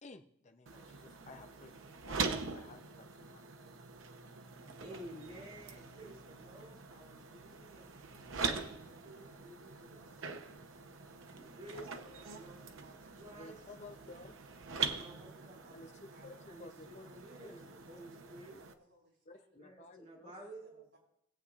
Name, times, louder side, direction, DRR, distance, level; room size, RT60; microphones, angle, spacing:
voice 1, 0.0-3.4 11.7-11.8 13.3-14.4 15.7-15.9 16.2-17.1 17.4-17.5 19.3-20.3, left 3 dB, 35° left, 6 dB, 0.6 m, -54 dB
sound 1, 0.7-18.7, right 5 dB, 90° right, 0.8 m, -43 dB
voice 2, 4.7-7.9 8.3-10.2 11.3-11.9 12.2-13.6 14.7-15.8 16.5-18.6 19.6-20.8, right 1 dB, 35° right, -3 dB, 2.9 m, -53 dB
Engine, 8.0-14.8, left 1 dB, 70° left, 1.6 m, -70 dB
voice 3, 11.8-13.4 13.8-14.0 15.4-16.5 17.3-17.5 17.9-19.6 20.3-21.0, equal, 70° right, -3 dB, 5.1 m, -66 dB
20.5 x 8.3 x 2.5 m, 0.76 s
head